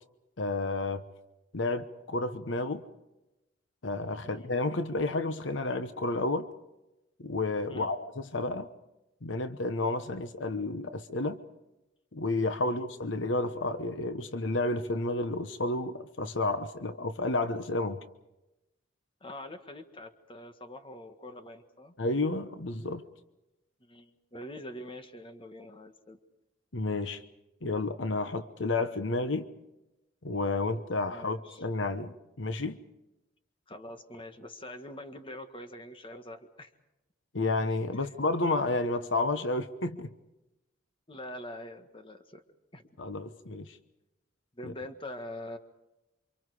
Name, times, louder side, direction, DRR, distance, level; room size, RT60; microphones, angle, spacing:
voice 1, 0.4-1.0 1.5-2.8 3.8-6.5 7.2-8.7 9.2-11.4 12.1-18.0 22.0-23.0 26.7-27.2 27.6-29.5 30.2-32.8 37.3-40.1 43.0-43.8 44.6-44.7, left 2 dB, 70° left, 10 dB, 1.1 m, -31 dB
voice 2, 19.2-21.9 23.8-26.2 31.1-31.7 33.7-36.7 37.9-38.1 41.1-42.4 42.7-42.9 44.5-45.6, left 1 dB, 25° left, 7 dB, 1.7 m, -44 dB
28.5 x 25.5 x 5.0 m, 0.97 s
head